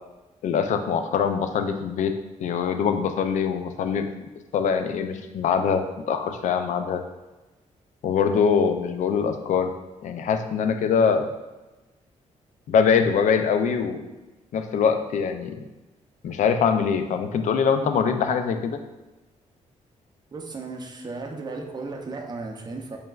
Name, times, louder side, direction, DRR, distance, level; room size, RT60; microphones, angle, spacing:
voice 1, 0.4-2.1 2.4-4.1 4.5-5.8 6.1-7.0 8.0-9.7 10.0-11.3 12.7-14.0 14.5-15.6 16.2-18.8, left 6 dB, 70° left, 7 dB, 0.4 m, -23 dB
voice 2, 20.3-23.0, right 3 dB, 30° right, 3 dB, 0.5 m, -35 dB
4.5 x 3.2 x 2.3 m, 1.1 s
cardioid pair, 130°, 13 cm